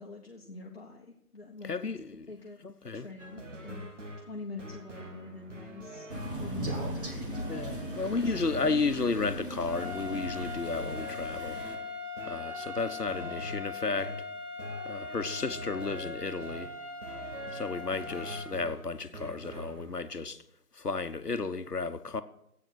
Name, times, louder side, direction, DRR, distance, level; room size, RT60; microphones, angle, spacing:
voice 1, 0.0-1.9 2.3-2.6 2.9-3.8 4.3-8.3, left 3 dB, 40° left, 1.3 m, -46 dB
voice 2, 1.6-2.3 2.6-3.1 7.5-11.6 12.3-14.1 14.8-16.7 17.5-20.4 20.7-22.2, left 4 dB, 80° left, 1.1 m, -33 dB
Musket Tango, 3.2-19.9, right 1 dB, 50° right, 1.6 m, -44 dB
Crow, 6.1-11.8, right 1 dB, 35° right, 2.0 m, -38 dB
sound 1, 9.6-18.5, left 4 dB, ahead, 2.4 m, -40 dB
12.5 x 8.9 x 5.9 m
figure-of-eight pair, 155°, 46 cm